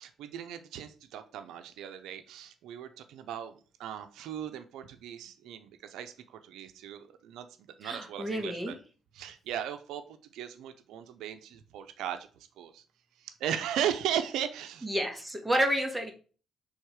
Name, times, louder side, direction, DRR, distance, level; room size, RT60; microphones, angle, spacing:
voice 1, 0.0-3.5 3.8-7.5 7.8-8.8 9.1-10.0 10.3-12.8 13.2-14.9, right 9 dB, 85° right, 9 dB, 0.5 m, -37 dB
voice 2, 7.8-8.7 14.8-16.1, right 1 dB, 5° right, 2 dB, 1.6 m, -30 dB
6.3 x 3.5 x 4.7 m, 0.38 s
cardioid pair, 90°, 0 cm